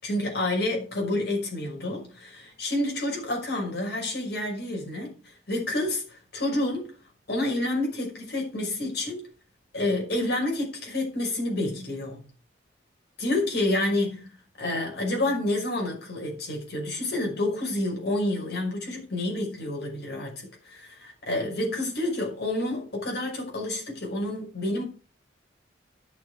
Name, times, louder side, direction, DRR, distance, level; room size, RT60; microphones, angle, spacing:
voice 1, 0.0-5.1 5.5-6.9 7.3-9.2 9.7-12.2 13.2-14.3 14.6-24.8, left 1 dB, 60° left, 5.8 m, -29 dB
11.0 x 7.0 x 6.3 m
head